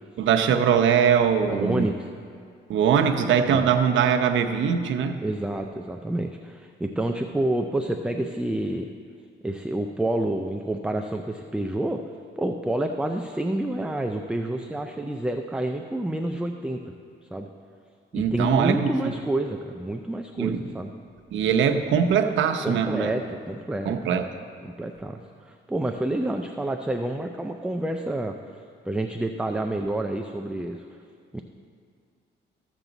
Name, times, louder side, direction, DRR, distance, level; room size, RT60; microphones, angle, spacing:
voice 1, 0.2-1.9 2.7-5.2 18.1-19.1 20.4-20.6 21.3-23.1 23.8-24.3, right 7 dB, 75° right, 5 dB, 0.8 m, -22 dB
voice 2, 1.5-2.1 3.5-3.7 5.2-8.9 9.4-12.0 12.4-16.8 17.3-17.5 18.1-20.9 22.6-24.1 24.6-25.2 25.5-28.4 28.9-30.9 31.3-31.4, right 1 dB, 5° right, 4 dB, 0.4 m, -28 dB
14.0 x 7.3 x 4.0 m, 2.2 s
cardioid pair, 90°, 20 cm